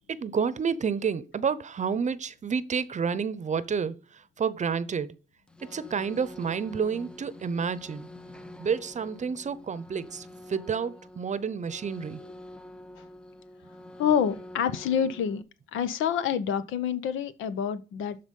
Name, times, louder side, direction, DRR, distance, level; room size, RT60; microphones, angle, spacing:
voice 1, 0.1-5.2 5.7-8.1 8.6-12.2, right 6 dB, 35° right, 0.8 m, -30 dB
sound 1, 5.5-15.4, left 1 dB, 5° left, 0.6 m, -47 dB
voice 2, 14.0-15.4 15.7-18.2, left 8 dB, 85° left, 0.9 m, -27 dB
12.0 x 4.0 x 5.4 m
cardioid pair, 90°, 20 cm